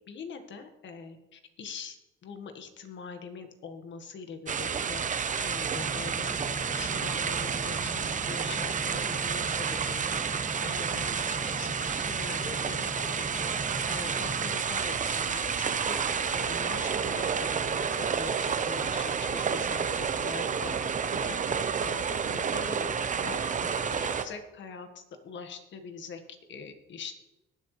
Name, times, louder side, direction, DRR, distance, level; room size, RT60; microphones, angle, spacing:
voice 1, 0.0-1.9 2.2-5.0 5.4-6.3 6.7-10.2 10.6-13.5 13.9-20.7 21.1-22.8 23.2-23.7 24.0-26.2 26.5-27.1, left 5 dB, 65° left, 7 dB, 1.5 m, -43 dB
sound 1, 4.5-24.3, right 6 dB, 40° right, 0.9 m, -30 dB
sound 2, 5.8-14.6, right 1 dB, 15° left, 2.1 m, -41 dB
20.5 x 7.7 x 3.2 m, 1.0 s
cardioid pair, 90°, 20 cm